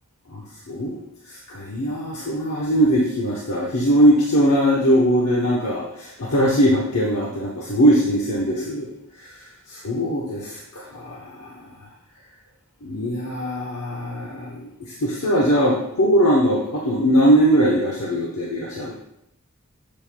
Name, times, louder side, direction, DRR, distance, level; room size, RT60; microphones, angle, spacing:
voice 1, 0.3-1.0 1.3-8.9 9.2-11.6 12.8-18.9, equal, 90° left, -3 dB, 0.9 m, -21 dB
7.4 x 7.3 x 2.2 m, 0.81 s
head